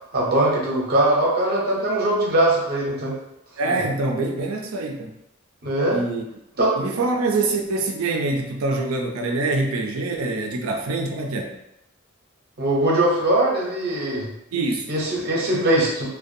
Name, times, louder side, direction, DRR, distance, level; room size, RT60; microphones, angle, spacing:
voice 1, 0.1-3.2 5.6-6.0 6.6-6.7 12.6-14.3 14.9-16.1, right 1 dB, 50° right, -3 dB, 0.7 m, -21 dB
voice 2, 3.6-5.2 5.9-6.2 6.8-11.6 14.5-14.9, right 3 dB, 85° right, 2 dB, 0.4 m, -25 dB
2.5 x 2.2 x 2.6 m, 0.82 s
head